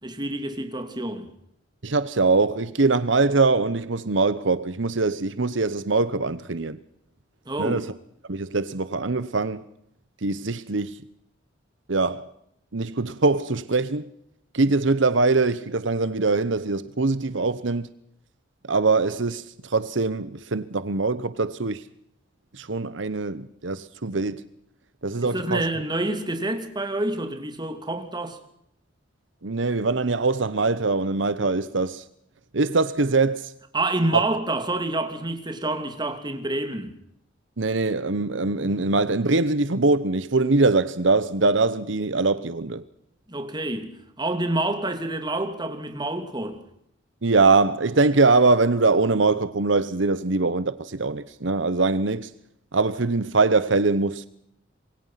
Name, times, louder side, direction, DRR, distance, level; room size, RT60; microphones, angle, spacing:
voice 1, 0.0-1.3 7.5-7.8 25.2-28.4 33.7-37.0 43.3-46.6, right 2 dB, 25° right, 2.9 m, -28 dB
voice 2, 1.8-6.8 7.6-7.9 8.3-9.6 10.2-11.0 11.9-12.3 12.7-14.1 14.5-17.9 18.7-21.8 22.5-24.4 25.0-25.7 29.4-32.0 32.5-33.5 34.1-34.2 37.6-42.8 47.2-52.3 52.7-54.3, right 3 dB, 70° right, 1.0 m, -22 dB
27.0 x 23.0 x 5.8 m
head